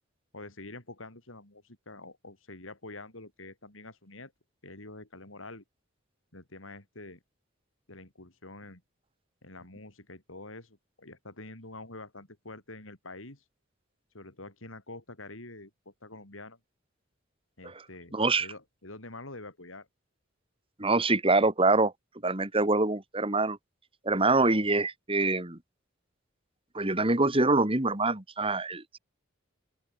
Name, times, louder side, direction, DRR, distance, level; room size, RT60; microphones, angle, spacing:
voice 1, 0.3-4.3 4.6-5.6 6.3-7.2 7.9-8.8 9.4-13.4 14.1-16.6 17.6-19.9, left 2 dB, 90° left, 6.0 m, -46 dB
voice 2, 18.1-18.5 20.8-21.9 22.2-23.6 24.0-25.6 26.7-29.0, right 3 dB, 30° right, 2.3 m, -25 dB
open air
head